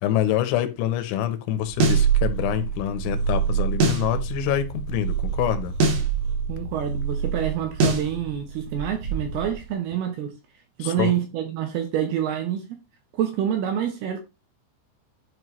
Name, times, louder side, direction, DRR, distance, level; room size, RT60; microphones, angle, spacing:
voice 1, 0.0-5.8 10.8-11.1, left 11 dB, 80° left, 3.3 m, -26 dB
Purr, 1.6-9.7, right 7 dB, 40° right, 3.1 m, -27 dB
sound 1, 1.8-2.1 3.8-4.1 5.8-6.1 7.8-8.1, right 2 dB, 55° right, 2.2 m, -21 dB
voice 2, 6.5-10.3 10.8-12.7 13.1-14.2, right 10 dB, 75° right, 2.5 m, -27 dB
11.0 x 5.2 x 3.1 m
omnidirectional pair, 5.4 m